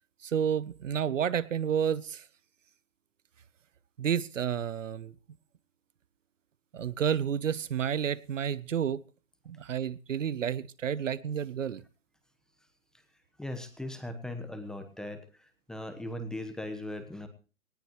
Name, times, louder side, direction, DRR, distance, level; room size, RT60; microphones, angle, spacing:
voice 1, 0.2-2.2 4.0-5.1 6.7-9.0 9.5-11.8, right 8 dB, 65° right, 19 dB, 1.0 m, -30 dB
voice 2, 13.4-15.2 15.7-17.3, left 1 dB, ahead, 7 dB, 1.1 m, -38 dB
19.0 x 17.0 x 3.1 m, 0.36 s
hypercardioid pair, 145°, 41 cm